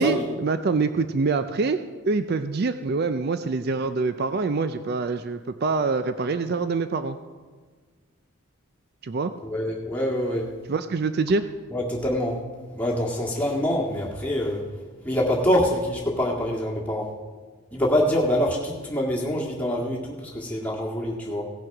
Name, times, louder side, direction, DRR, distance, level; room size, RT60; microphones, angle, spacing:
voice 1, 0.0-1.8 2.1-7.2 9.0-9.3 10.7-11.4, right 4 dB, 45° right, 10 dB, 0.4 m, -25 dB
voice 2, 9.4-10.5 11.7-12.4 12.7-14.6 15.0-17.1 17.7-21.5, left 1 dB, 5° left, -4 dB, 1.8 m, -25 dB
17.0 x 6.3 x 5.9 m, 1.5 s
head